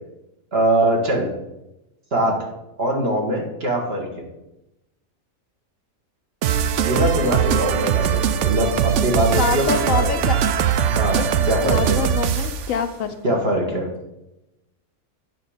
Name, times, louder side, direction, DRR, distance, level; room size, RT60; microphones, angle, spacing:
voice 1, 0.5-1.3 2.1-2.5 2.8-4.3 6.8-10.1 11.0-12.0 13.2-13.9, right 1 dB, 45° right, 0 dB, 1.9 m, -22 dB
sound 1, 6.4-12.7, right 8 dB, 65° right, 0.8 m, -21 dB
voice 2, 9.4-10.4 10.7-10.9 11.1-13.4, left 7 dB, 70° left, 8 dB, 1.0 m, -26 dB
9.1 x 5.9 x 5.0 m, 0.93 s
omnidirectional pair, 1.5 m